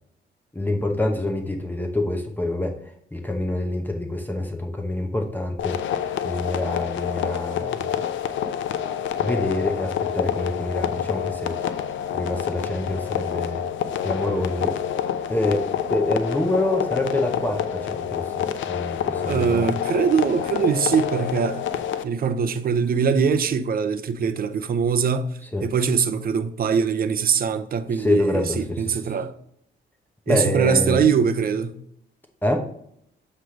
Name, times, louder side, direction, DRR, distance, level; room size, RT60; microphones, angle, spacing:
voice 1, 0.5-2.7 3.1-5.8 6.2-8.0 9.2-11.5 12.1-13.6 14.0-14.8 15.3-19.7 25.5-25.7 27.9-29.0 30.3-31.0 32.4-32.6, left 1 dB, 10° left, 0.9 m, -26 dB
sound 1, 5.6-22.0, left 9 dB, 70° left, 0.6 m, -27 dB
voice 2, 19.3-21.7 22.0-29.3 30.3-31.8, right 6 dB, 50° right, 0.7 m, -22 dB
7.7 x 3.3 x 5.1 m
cardioid pair, 90°, 20 cm